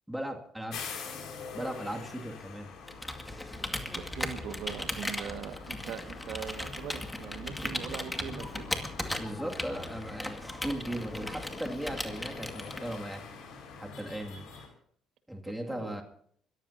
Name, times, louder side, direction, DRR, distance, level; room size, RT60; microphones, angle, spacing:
voice 1, 0.1-0.9 1.5-2.7 9.2-13.2 13.8-14.5 15.3-16.0, right 1 dB, 5° right, 1 dB, 2.5 m, -37 dB
sound 1, 0.7-14.7, left 5 dB, 75° left, 5.2 m, -46 dB
Computer keyboard, 2.8-13.1, left 1 dB, 10° left, 2.2 m, -37 dB
voice 2, 3.9-8.7 15.7-16.0, right 8 dB, 75° right, 6 dB, 1.9 m, -41 dB
sound 2, 7.7-12.9, left 2 dB, 30° left, 5.7 m, -51 dB
29.0 x 14.5 x 2.9 m, 0.63 s
supercardioid pair, 70°, 0 cm